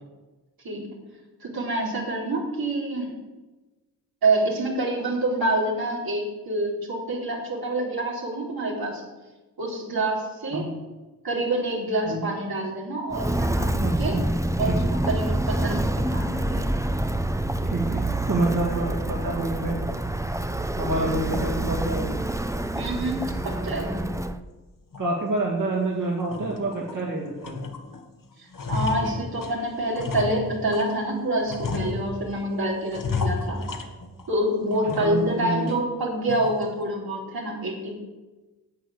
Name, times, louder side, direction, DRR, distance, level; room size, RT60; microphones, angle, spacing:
voice 1, 1.4-3.2 4.2-9.0 9.6-10.7 11.2-14.2 14.6-16.7 22.8-24.0 28.4-33.6 34.3-38.0, right 1 dB, 80° right, -3 dB, 4.0 m, -27 dB
Walk footsteps, 13.1-24.4, right 1 dB, 10° right, 0.9 m, -27 dB
voice 2, 13.8-14.3 14.6-14.9 17.6-19.8 20.7-22.1 25.0-27.7 35.0-35.7, right 2 dB, 60° right, -3 dB, 2.8 m, -27 dB
sound 1, 24.9-25.1 25.6-25.7 26.1-27.0 27.4-28.1 28.3-31.0 31.5-32.4 32.9-34.4 34.7-35.3 35.7-35.8 36.3-36.7, left 4 dB, 60° left, 1.8 m, -32 dB
10.5 x 8.4 x 8.4 m, 1.2 s
cardioid pair, 45°, 36 cm